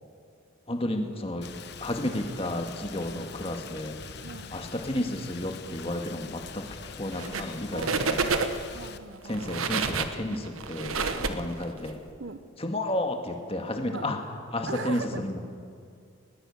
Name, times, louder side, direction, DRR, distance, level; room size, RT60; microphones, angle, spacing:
voice 1, 0.7-1.5 1.8-4.0 4.5-8.2 9.2-12.0 12.6-14.2 14.5-15.4, left 1 dB, 25° left, 3 dB, 2.0 m, -32 dB
Rain, 1.4-9.0, left 5 dB, 50° left, 1.0 m, -44 dB
sound 1, 7.1-7.5 7.8-8.7 9.3-11.9, right 4 dB, 80° right, 1.2 m, -29 dB
voice 2, 7.7-9.6 12.2-12.4 13.9-14.1 14.7-15.2, right 4 dB, 60° right, 11 dB, 0.9 m, -40 dB
20.5 x 18.0 x 7.3 m, 2.4 s
head